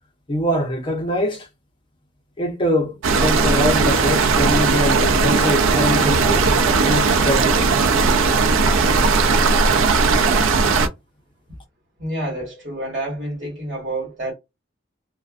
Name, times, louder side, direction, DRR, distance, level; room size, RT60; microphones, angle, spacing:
voice 1, 0.3-1.5 2.4-7.8, left 1 dB, 25° left, 0.6 m, -23 dB
sound 1, 3.0-10.9, right 4 dB, 85° right, 0.4 m, -17 dB
voice 2, 12.0-14.3, right 1 dB, 40° right, 1.4 m, -28 dB
2.5 x 2.1 x 2.4 m
head